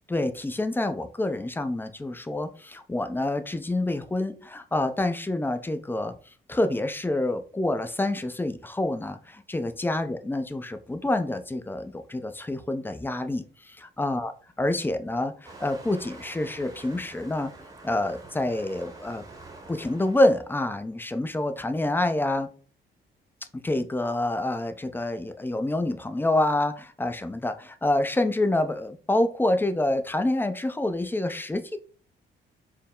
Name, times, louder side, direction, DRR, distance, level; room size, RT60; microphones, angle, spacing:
voice 1, 0.1-6.1 6.5-13.4 14.0-14.3 14.6-17.5 17.8-19.2 19.7-22.5 23.5-31.8, left 1 dB, 10° left, 9 dB, 0.4 m, -27 dB
Waves surf, 15.4-20.5, right 2 dB, 20° right, 0.9 m, -47 dB
4.5 x 2.0 x 3.6 m, 0.41 s
cardioid pair, 90°, 20 cm